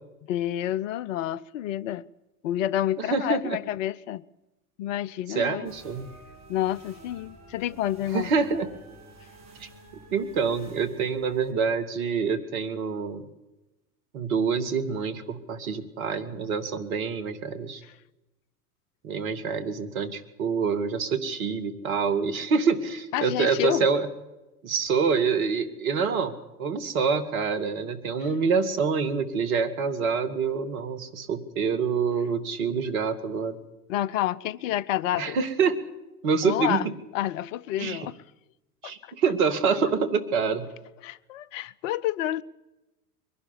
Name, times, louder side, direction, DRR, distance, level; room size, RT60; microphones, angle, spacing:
voice 1, 0.3-2.1 2.4-4.2 4.8-5.7 6.5-8.3 23.1-23.9 33.9-35.4 36.4-36.9 37.1-38.2 38.8-39.1 41.0-42.4, left 13 dB, 55° left, 0.7 m, -29 dB
voice 2, 3.0-3.6 5.3-6.1 8.1-8.7 9.6-9.7 10.1-13.3 14.1-17.8 19.0-24.1 24.6-33.6 35.2-35.8 36.2-36.8 37.8-38.1 38.8-40.7, right 5 dB, 60° right, 2.1 m, -26 dB
sound 1, 5.6-11.5, right 2 dB, 35° right, 4.8 m, -50 dB
23.0 x 11.5 x 9.9 m
figure-of-eight pair, 80°, 46 cm